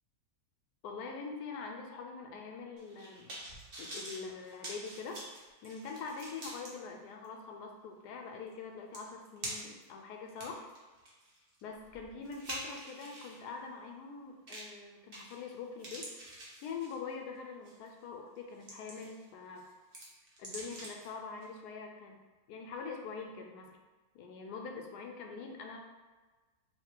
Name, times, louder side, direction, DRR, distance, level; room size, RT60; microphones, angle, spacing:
voice 1, 0.8-3.3 3.8-5.2 5.6-10.6 11.6-16.1 16.6-19.7 20.4-23.8 24.1-25.8, left 5 dB, 80° left, 2 dB, 1.1 m, -44 dB
sound 1, 2.8-6.7 7.2-7.3 8.5-8.6 8.9-9.8 10.3-13.4 14.5-14.8 15.1-15.5 15.8-17.1 17.7-17.9 18.4-19.2 19.6-21.1 21.4-21.5, right 1 dB, 45° right, 0.9 m, -46 dB
3.2 x 2.7 x 4.4 m, 1.3 s
omnidirectional pair, 1.7 m